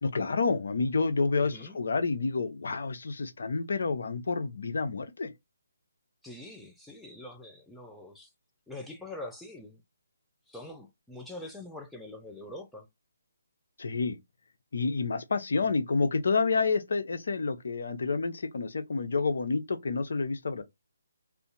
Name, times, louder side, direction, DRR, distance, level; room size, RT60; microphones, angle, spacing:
voice 1, 0.0-5.3 13.8-14.2 14.7-20.6, left 4 dB, 65° left, 0.7 m, -29 dB
voice 2, 1.4-1.8 6.2-8.3 8.7-9.8 10.5-12.9 15.5-15.6, left 2 dB, 5° left, 0.5 m, -44 dB
2.6 x 2.4 x 3.9 m
figure-of-eight pair, 145°, 0 cm